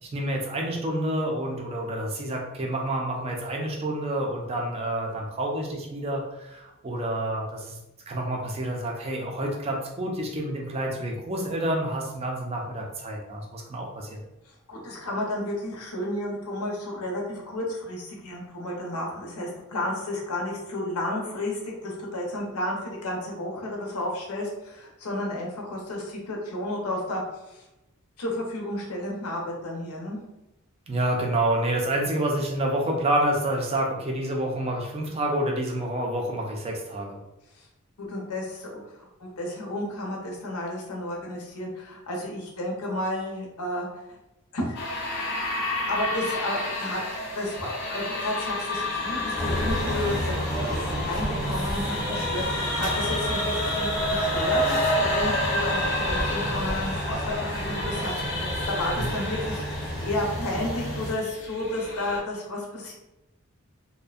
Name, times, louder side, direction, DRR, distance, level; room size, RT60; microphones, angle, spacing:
voice 1, 0.0-7.8 8.1-14.2 30.9-37.2 59.0-59.1, right 1 dB, 25° right, 0 dB, 0.4 m, -28 dB
voice 2, 14.5-27.6 28.2-30.2 37.5-37.7 38.0-44.2 44.5-44.8 45.1-45.2 45.9-47.0 47.3-50.4 50.6-63.0, left 1 dB, 90° left, -1 dB, 0.7 m, -32 dB
sound 1, 44.7-62.2, left 1 dB, 50° left, 0.5 m, -30 dB
sound 2, 49.4-61.1, equal, ahead, 0.7 m, -31 dB
2.5 x 2.1 x 2.4 m, 0.94 s
head